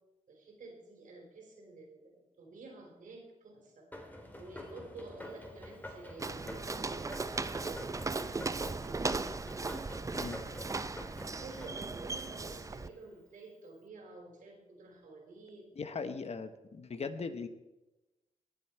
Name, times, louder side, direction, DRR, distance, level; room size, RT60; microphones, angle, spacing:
voice 1, 0.3-3.9 4.4-9.3 9.9-10.3 11.4-16.0, right 2 dB, 75° right, 2 dB, 3.9 m, -51 dB
sound 1, 3.9-13.0, left 1 dB, 10° left, 2.4 m, -48 dB
Walk footsteps, 6.2-12.9, right 3 dB, 25° right, 0.5 m, -37 dB
voice 2, 15.8-17.5, left 5 dB, 50° left, 10 dB, 1.1 m, -39 dB
19.5 x 7.5 x 4.5 m, 1.0 s
cardioid pair, 75°, 14 cm